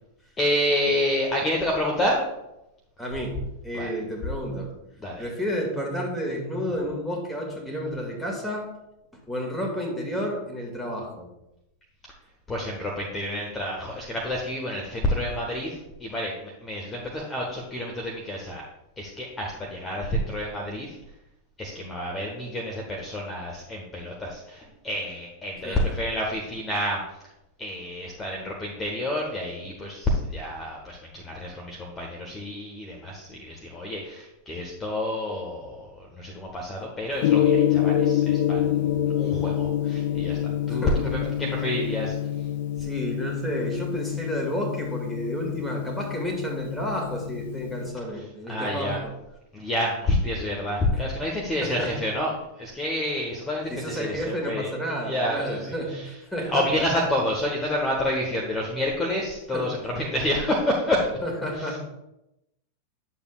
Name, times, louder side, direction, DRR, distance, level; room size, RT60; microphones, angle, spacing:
voice 1, 0.4-2.2 3.7-3.9 5.0-5.3 12.5-18.6 19.0-21.0 21.6-27.0 27.6-40.4 40.7-42.1 48.5-49.0 49.5-54.7 55.0-56.1 56.5-61.1 61.5-61.8, left 1 dB, 15° left, -1 dB, 1.2 m, -28 dB
voice 2, 3.0-4.7 5.2-8.7 9.3-11.3 25.6-25.8 40.7-41.3 42.8-49.1 50.9-51.0 51.6-51.9 53.7-56.9 59.5-59.7 61.2-61.8, equal, ahead, -2 dB, 2.1 m, -31 dB
Gong, 37.2-47.9, left 10 dB, 55° left, 0.5 m, -26 dB
10.0 x 7.0 x 2.4 m, 0.90 s
figure-of-eight pair, 90°, 0 cm